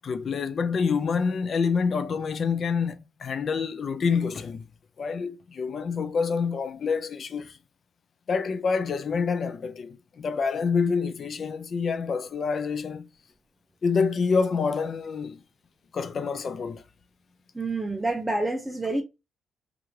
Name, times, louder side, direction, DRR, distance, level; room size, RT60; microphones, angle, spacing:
voice 1, 0.0-4.7 5.0-7.6 8.3-13.1 13.8-15.4 15.9-16.8, left 5 dB, 50° left, 0.5 m, -27 dB
voice 2, 17.5-19.0, right 2 dB, 10° right, 0.5 m, -28 dB
2.9 x 2.5 x 2.8 m
cardioid pair, 90°, 0 cm